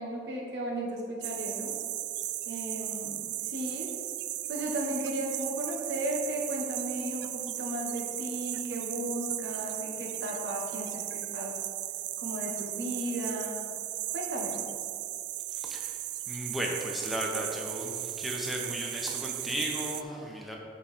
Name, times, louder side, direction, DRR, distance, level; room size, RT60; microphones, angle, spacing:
voice 1, 0.0-1.7 2.4-3.9 4.5-11.5 12.2-13.6 14.1-14.6, right 1 dB, 85° right, -2 dB, 1.3 m, -35 dB
sound 1, 1.2-20.0, right 14 dB, 70° right, 0.3 m, -36 dB
voice 2, 15.5-16.0 16.3-20.6, equal, ahead, -2 dB, 0.9 m, -35 dB
8.5 x 4.8 x 4.3 m, 2.3 s
head